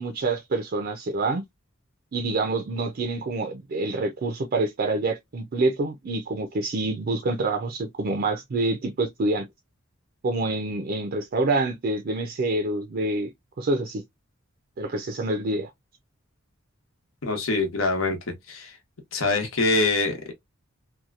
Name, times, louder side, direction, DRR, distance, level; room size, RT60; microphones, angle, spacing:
voice 1, 0.0-1.4 2.1-9.5 10.2-13.3 13.6-14.0 14.8-15.7, right 2 dB, 50° right, 0.4 m, -27 dB
voice 2, 17.2-18.7 19.1-20.3, left 3 dB, 80° left, 0.9 m, -24 dB
2.8 x 2.2 x 2.4 m
head